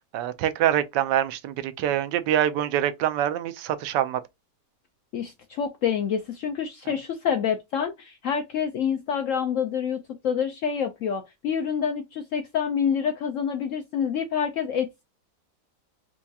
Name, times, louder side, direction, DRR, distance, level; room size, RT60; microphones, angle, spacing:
voice 1, 0.1-4.2, right 11 dB, 90° right, 1.2 m, -25 dB
voice 2, 5.1-15.0, left 7 dB, 75° left, 0.7 m, -27 dB
4.5 x 2.2 x 2.7 m
omnidirectional pair, 1.8 m